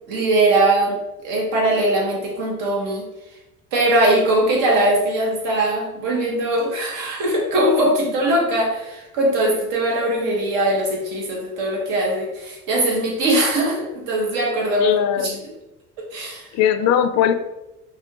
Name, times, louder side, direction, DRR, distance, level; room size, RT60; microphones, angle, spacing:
voice 1, 0.1-3.1 3.7-15.3 16.0-16.5, right 1 dB, 90° right, -1 dB, 1.5 m, -21 dB
voice 2, 14.8-15.4 16.5-17.3, left 9 dB, 55° left, 9 dB, 0.4 m, -19 dB
4.9 x 2.6 x 3.7 m, 0.96 s
cardioid pair, 170°, 31 cm